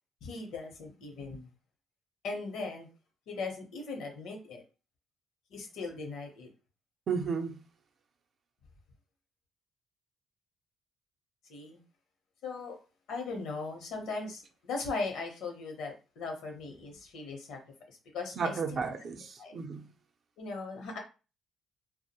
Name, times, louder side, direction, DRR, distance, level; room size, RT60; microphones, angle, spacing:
voice 1, 0.2-1.5 2.2-2.9 3.3-4.6 5.5-6.5 11.5-11.8 12.4-12.8 13.1-17.6 17.9-18.8 19.4-19.6 20.4-21.0, left 3 dB, 85° left, 0.7 m, -39 dB
voice 2, 7.1-7.6 18.4-19.9, right 5 dB, 55° right, 0.5 m, -33 dB
2.2 x 2.0 x 2.8 m
cardioid pair, 90°, 0 cm